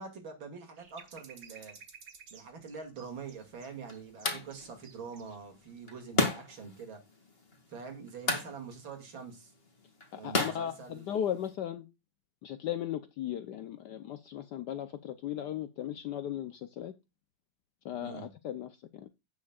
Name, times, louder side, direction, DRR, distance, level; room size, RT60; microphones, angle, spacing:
voice 1, 0.0-1.8 2.3-7.0 7.7-9.5 10.2-11.2 18.0-18.3, right 5 dB, 80° right, 3.2 m, -45 dB
sound 1, 0.8-5.4 5.7-5.8, right 6 dB, 60° right, 2.3 m, -53 dB
sound 2, 3.0-11.5, left 3 dB, 30° left, 2.2 m, -36 dB
voice 2, 10.1-11.8 12.4-16.9 17.8-19.1, left 10 dB, 65° left, 1.2 m, -37 dB
16.5 x 6.5 x 2.4 m
omnidirectional pair, 2.1 m